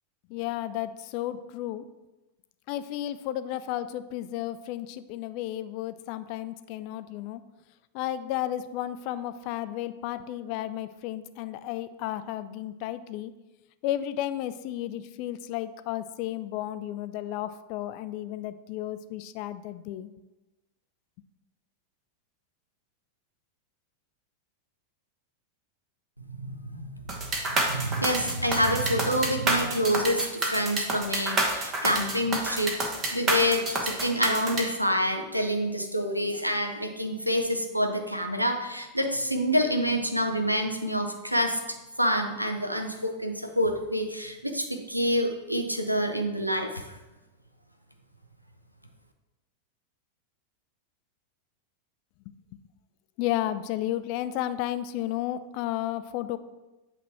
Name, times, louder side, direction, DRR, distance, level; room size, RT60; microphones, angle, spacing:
voice 1, 0.3-1.8 2.7-7.4 7.9-13.3 13.8-20.1 53.2-56.4, left 13 dB, 45° left, 12 dB, 0.3 m, -33 dB
voice 2, 26.3-26.9 27.5-41.6 42.0-46.9, equal, 90° right, 4 dB, 0.6 m, -27 dB
sound 1, 27.1-34.6, right 2 dB, 25° right, 1.1 m, -28 dB
8.1 x 3.0 x 4.3 m, 1.1 s
figure-of-eight pair, 90°, 0 cm